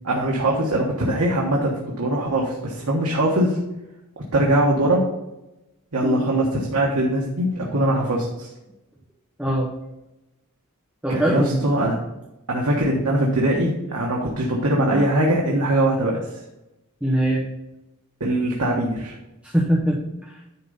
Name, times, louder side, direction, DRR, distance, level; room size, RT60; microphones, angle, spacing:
voice 1, 0.0-3.6 4.3-5.1 5.9-8.5 11.1-12.0 12.5-16.2 18.2-19.1, right 1 dB, 90° right, -2 dB, 1.3 m, -21 dB
voice 2, 9.4-9.7 11.0-11.6 14.9-15.1 17.0-17.5 19.5-20.2, right 1 dB, 5° right, -4 dB, 0.9 m, -22 dB
10.0 x 3.8 x 5.5 m, 0.96 s
head